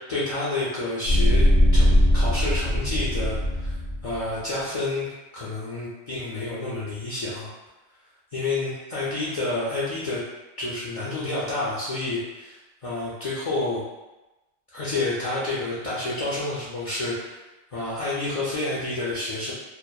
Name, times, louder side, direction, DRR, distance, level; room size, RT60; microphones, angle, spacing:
voice 1, 0.1-1.5 1.7-3.8 4.0-7.5 8.3-10.2 10.6-13.8 14.7-17.4 17.7-19.5, left 2 dB, 70° left, -8 dB, 0.3 m, -29 dB
sound 1, 1.0-4.2, equal, 60° right, 0.6 m, -20 dB
2.7 x 2.0 x 2.2 m, 1.1 s
omnidirectional pair, 1.3 m